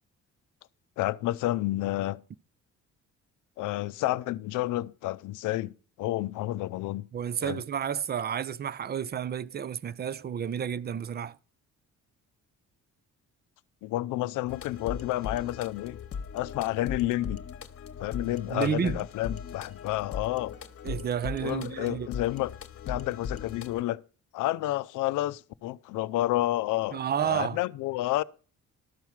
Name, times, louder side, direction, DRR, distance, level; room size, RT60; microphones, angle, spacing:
voice 1, 1.0-2.2 3.6-5.7 6.0-7.1 7.4-7.6 13.8-16.0 16.3-17.4 18.0-20.5 21.4-22.5 22.9-24.0 24.3-28.2, left 16 dB, 85° left, 0.5 m, -30 dB
voice 2, 7.1-11.4 18.5-19.0 20.8-22.1 26.9-27.6, right 8 dB, 35° right, 0.5 m, -31 dB
sound 1, 14.5-23.8, left 6 dB, 50° left, 1.1 m, -39 dB
12.5 x 4.7 x 7.2 m
cardioid pair, 90°, 30 cm